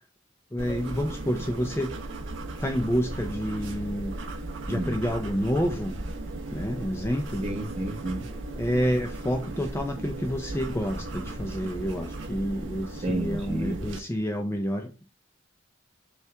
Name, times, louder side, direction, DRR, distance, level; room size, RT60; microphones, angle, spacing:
voice 1, 0.5-2.0 2.6-4.1 4.7-6.0 6.5-7.4 8.6-14.9, equal, 15° left, 0.4 m, -29 dB
sound 1, 0.6-14.0, right 2 dB, 75° right, 0.7 m, -36 dB
voice 2, 7.4-8.6 13.0-13.8, right 1 dB, 30° right, 1.1 m, -31 dB
5.5 x 2.5 x 3.3 m
head